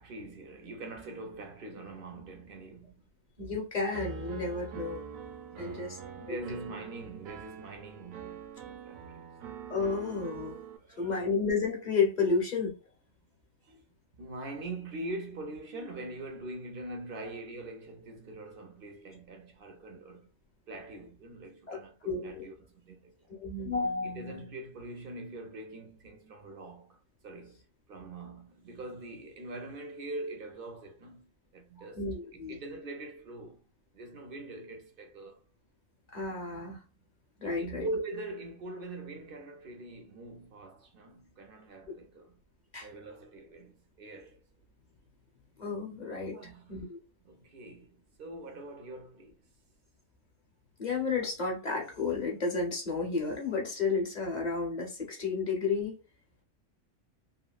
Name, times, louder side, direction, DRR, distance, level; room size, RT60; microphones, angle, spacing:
voice 1, 0.0-2.9 5.5-9.3 10.8-11.3 13.6-13.8 14.2-20.3 20.7-23.3 24.0-27.0 27.2-27.6 27.9-32.0 32.3-33.6 33.9-35.4 37.4-42.4 42.8-44.4 46.3-46.8 47.2-49.4, right 2 dB, 55° right, 0.7 m, -43 dB
voice 2, 3.4-5.0 5.6-6.0 6.3-6.4 9.7-10.6 11.0-12.7 21.7-21.8 22.0-22.5 23.3-24.5 31.8-32.6 36.1-36.8 37.4-37.9 42.7-42.9 45.6-46.3 46.7-47.0 50.8-56.0, left 4 dB, 40° left, 0.9 m, -32 dB
Piano, 3.9-10.8, right 6 dB, 80° right, 1.0 m, -44 dB
2.9 x 2.6 x 2.3 m
omnidirectional pair, 1.4 m